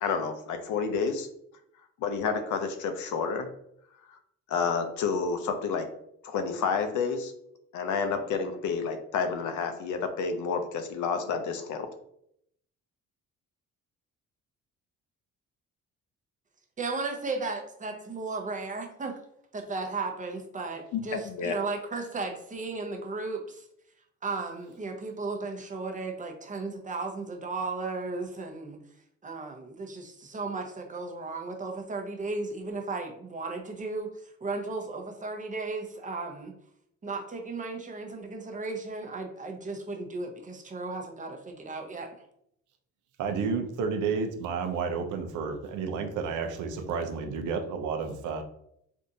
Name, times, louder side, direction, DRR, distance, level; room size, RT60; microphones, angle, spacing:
voice 1, 0.0-1.3 2.0-3.5 4.5-5.9 6.2-7.3 7.7-11.9 20.9-21.6, left 5 dB, 75° left, 7 dB, 0.6 m, -30 dB
voice 2, 16.8-19.1 19.5-23.6 24.2-28.8 29.2-34.1 34.4-36.5 37.0-42.1, right 3 dB, 25° right, 3 dB, 0.6 m, -35 dB
voice 3, 43.2-48.4, right 5 dB, 80° right, 5 dB, 0.6 m, -31 dB
3.5 x 2.5 x 2.7 m, 0.74 s
cardioid pair, 90°, 30 cm